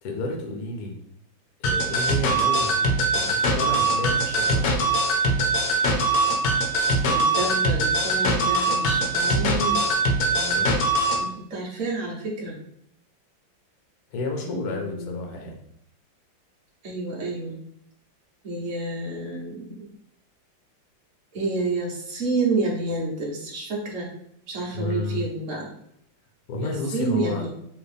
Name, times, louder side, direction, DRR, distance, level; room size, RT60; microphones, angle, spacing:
voice 1, 0.0-0.9 1.6-2.8 3.1-4.7 10.3-10.8 14.1-15.6 24.7-25.3 26.5-27.4, left 2 dB, 60° left, 2 dB, 1.3 m, -31 dB
sound 1, 1.6-11.2, right 2 dB, 80° left, 1.5 m, -22 dB
voice 2, 7.1-9.9 11.1-12.6 14.4-15.3 16.8-17.6 18.4-19.9 21.3-24.1 24.5-25.7 26.6-27.5, right 3 dB, 45° right, -3 dB, 1.4 m, -29 dB
4.4 x 3.0 x 3.4 m, 0.73 s
omnidirectional pair, 2.1 m